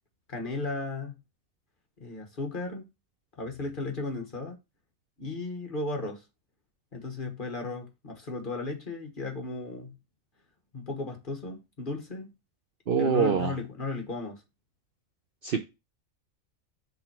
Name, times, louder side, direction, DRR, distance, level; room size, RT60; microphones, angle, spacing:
voice 1, 0.3-1.1 2.0-2.9 3.4-4.6 5.2-6.2 6.9-9.9 10.7-12.3 13.0-14.4, left 2 dB, 40° left, 1.4 m, -35 dB
voice 2, 12.9-13.5 15.4-15.6, right 6 dB, 55° right, 0.7 m, -24 dB
5.7 x 4.1 x 4.4 m
omnidirectional pair, 1.5 m